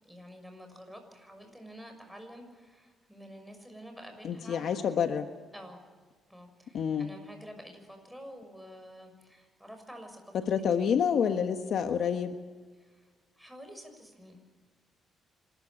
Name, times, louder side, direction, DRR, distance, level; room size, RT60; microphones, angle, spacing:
voice 1, 0.0-4.7 5.5-5.8 6.3-10.4 12.8-13.1 13.4-14.4, equal, ahead, 5 dB, 6.3 m, -49 dB
voice 2, 4.2-5.3 6.7-7.1 10.3-12.3, left 7 dB, 65° left, 7 dB, 1.4 m, -28 dB
26.5 x 14.0 x 8.8 m, 1.5 s
cardioid pair, 90°, 0 cm